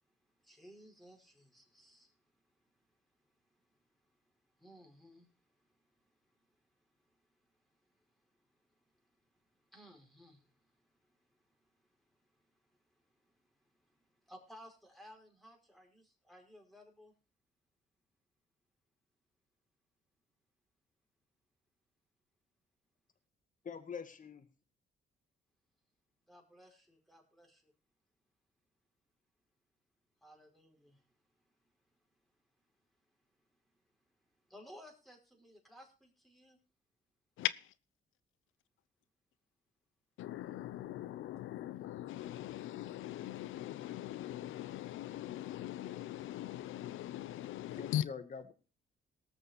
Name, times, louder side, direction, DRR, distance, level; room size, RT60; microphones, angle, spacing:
voice 1, 0.4-2.1 4.6-5.3 9.7-10.4 14.3-17.1 26.3-27.6 30.2-31.0 34.5-36.6, equal, ahead, 1 dB, 4.9 m, -57 dB
voice 2, 23.6-24.5 47.8-48.5, left 6 dB, 40° left, 9 dB, 1.9 m, -44 dB
voice 3, 37.4-37.7 40.2-48.0, left 13 dB, 85° left, 19 dB, 0.8 m, -40 dB
19.0 x 6.7 x 4.3 m, 0.35 s
cardioid pair, 90°, 20 cm